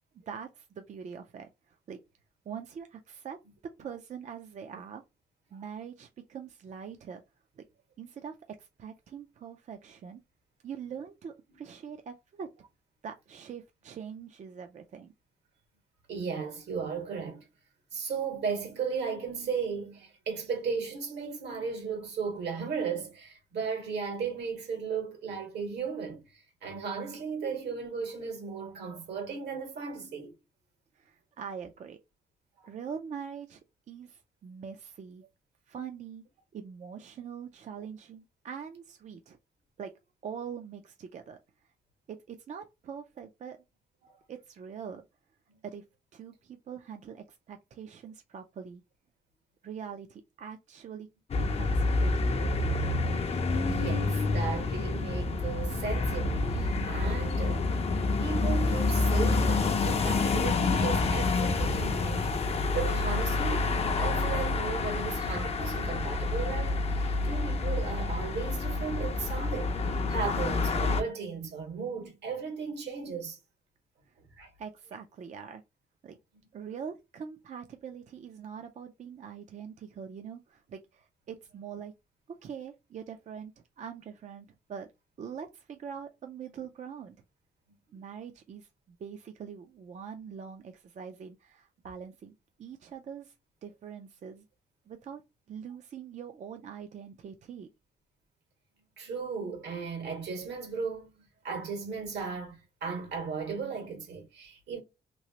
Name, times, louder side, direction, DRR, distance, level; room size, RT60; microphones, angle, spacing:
voice 1, 0.1-2.0 2.5-3.4 3.8-5.0 5.5-7.2 7.6-7.7 8.0-10.2 10.6-12.5 13.0-15.1 30.9-32.0 32.6-33.6 33.9-35.2 35.7-36.2 36.5-39.4 39.8-39.9 40.2-41.4 42.1-43.6 44.3-45.0 45.6-45.9 46.1-48.8 49.6-51.1 51.4-52.8 74.6-75.6 76.0-76.2 76.5-81.9 82.3-84.9 85.2-87.2 87.9-92.3 92.6-93.3 93.6-94.4 94.9-95.2 95.5-97.7, right 7 dB, 45° right, 0.4 m, -43 dB
voice 2, 16.1-17.5 17.9-30.3 32.6-32.7 44.0-44.1 53.7-57.7 58.2-63.7 64.0-73.4 74.4-74.5 99.0-104.8, right 5 dB, 80° right, 1.6 m, -36 dB
sound 1, 51.3-71.0, left 3 dB, 35° left, 0.5 m, -28 dB
3.0 x 2.8 x 2.8 m
cardioid pair, 125°, 17 cm